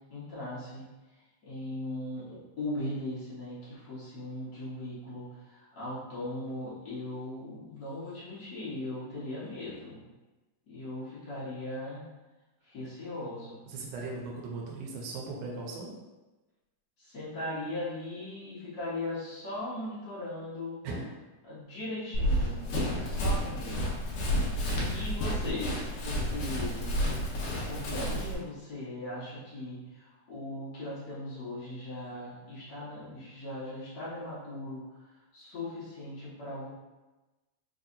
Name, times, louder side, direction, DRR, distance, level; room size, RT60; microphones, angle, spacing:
voice 1, 0.1-0.8 1.4-10.0 10.7-12.1 12.6-13.6 17.0-20.8 21.4-22.7 23.0-24.0 24.9-26.9 27.6-36.7, left 1 dB, 65° left, -10 dB, 0.9 m, -39 dB
voice 2, 13.7-16.0 20.8-21.0 24.6-25.1, right 3 dB, 90° right, -2 dB, 2.1 m, -39 dB
Run, 22.1-28.3, equal, 80° left, 1.2 m, -30 dB
4.5 x 2.7 x 2.5 m, 1.1 s
omnidirectional pair, 3.4 m